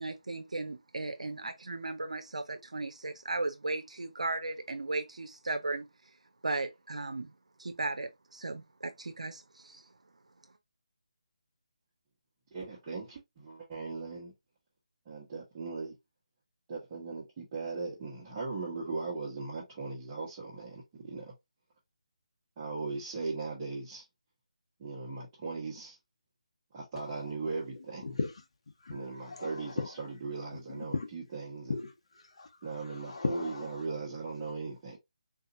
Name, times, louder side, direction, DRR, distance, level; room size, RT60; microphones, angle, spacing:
voice 1, 0.0-5.9 6.4-7.3 7.6-9.8, right 2 dB, 80° right, 0.6 m, -36 dB
voice 2, 12.5-14.3 15.1-15.9 16.7-21.3 22.6-24.0 24.8-26.0 26.7-28.2 28.9-31.7 32.6-35.0, right 4 dB, 25° right, 1.1 m, -38 dB
voice 3, 27.0-27.3 27.7-28.3 28.8-30.0 30.5-31.1 31.7-32.5 32.9-33.8, left 3 dB, 55° left, 0.9 m, -37 dB
3.8 x 2.8 x 2.5 m
figure-of-eight pair, 160°, 4 cm